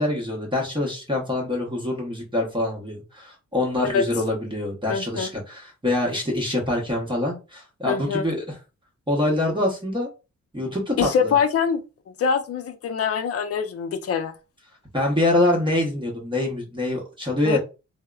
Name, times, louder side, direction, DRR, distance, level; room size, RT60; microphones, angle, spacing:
voice 1, 0.0-8.6 9.1-10.1 10.5-11.3 14.9-17.6, left 1 dB, 15° right, -2 dB, 0.8 m, -25 dB
voice 2, 4.9-5.3 7.9-8.2 11.0-11.8 12.2-14.3 17.5-17.6, left 6 dB, 50° left, 8 dB, 0.5 m, -24 dB
2.8 x 2.0 x 2.3 m, 0.30 s
cardioid pair, 95°, 30 cm